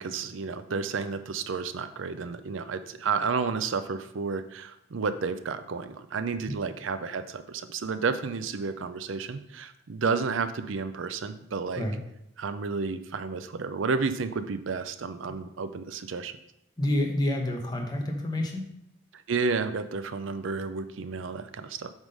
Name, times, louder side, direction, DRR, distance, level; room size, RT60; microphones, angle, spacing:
voice 1, 0.0-11.8 12.4-16.3 19.3-21.9, right 4 dB, 85° right, 11 dB, 0.5 m, -31 dB
voice 2, 16.8-18.7, left 1 dB, 20° left, 1 dB, 0.9 m, -28 dB
8.0 x 3.7 x 5.3 m, 0.78 s
head